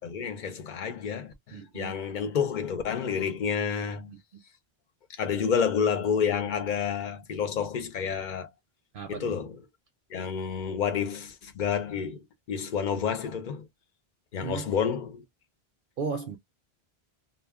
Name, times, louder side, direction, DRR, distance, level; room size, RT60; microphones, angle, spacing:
voice 1, 0.0-4.1 5.2-8.5 9.1-9.6 10.1-12.2 12.5-13.7 14.3-15.2, left 7 dB, 50° left, 0.7 m, -29 dB
voice 2, 1.5-2.0 4.1-4.2 8.9-9.4 14.4-14.8 16.0-16.4, right 5 dB, 65° right, 0.7 m, -35 dB
2.2 x 2.1 x 3.4 m
omnidirectional pair, 1.1 m